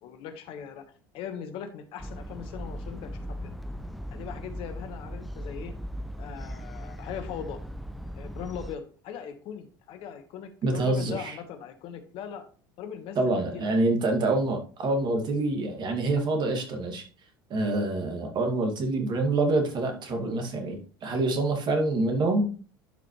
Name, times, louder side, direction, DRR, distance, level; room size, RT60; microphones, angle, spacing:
voice 1, 0.0-0.8 1.1-3.5 4.1-5.7 6.2-7.6 8.1-12.4 12.8-13.2 13.5-13.7, left 8 dB, 50° left, 7 dB, 1.4 m, -39 dB
sound 1, 2.0-8.8, equal, ahead, 0.6 m, -38 dB
voice 2, 10.6-11.4 13.2-17.0 17.5-22.5, right 2 dB, 40° right, 4 dB, 2.2 m, -26 dB
11.5 x 5.0 x 3.2 m, 0.39 s
hypercardioid pair, 75°, 12 cm